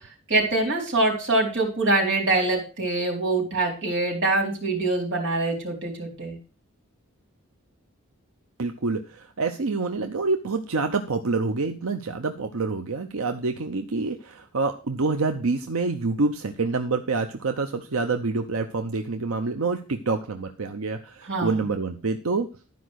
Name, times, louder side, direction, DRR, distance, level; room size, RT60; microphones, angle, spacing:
voice 1, 0.3-6.4 21.3-21.6, right 2 dB, 60° right, 1 dB, 4.0 m, -24 dB
voice 2, 8.6-22.5, right 3 dB, 90° right, 6 dB, 0.8 m, -27 dB
12.5 x 5.2 x 6.3 m, 0.36 s
head